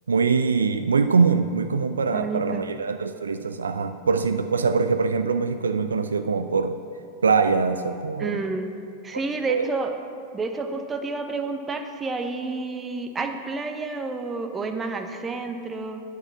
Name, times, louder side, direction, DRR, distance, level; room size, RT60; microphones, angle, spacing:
voice 1, 0.1-6.8 7.2-8.4 9.5-9.7, right 5 dB, 70° right, 9 dB, 0.3 m, -23 dB
voice 2, 2.1-2.6 8.2-8.7 9.0-9.9 10.3-16.0, right 3 dB, 15° right, 6 dB, 0.8 m, -30 dB
8.8 x 5.9 x 7.2 m, 2.4 s
figure-of-eight pair, 90°, 0 cm